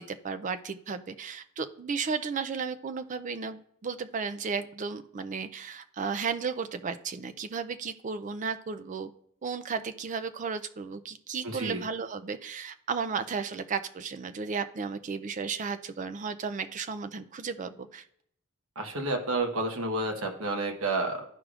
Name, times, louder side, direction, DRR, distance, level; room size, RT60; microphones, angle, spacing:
voice 1, 0.0-9.1 9.4-18.0, right 5 dB, 35° right, 11 dB, 0.4 m, -34 dB
voice 2, 11.4-11.8 18.8-21.2, right 2 dB, 65° right, 4 dB, 1.1 m, -30 dB
12.5 x 4.8 x 2.4 m, 0.70 s
head